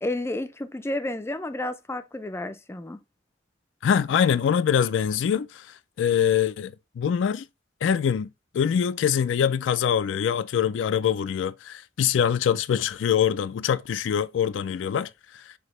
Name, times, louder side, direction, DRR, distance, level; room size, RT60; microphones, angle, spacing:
voice 1, 0.0-3.0, left 1 dB, 15° left, 0.4 m, -31 dB
voice 2, 3.8-7.4 7.8-8.3 8.5-15.5, left 8 dB, 80° left, 0.3 m, -24 dB
6.1 x 2.8 x 3.1 m
head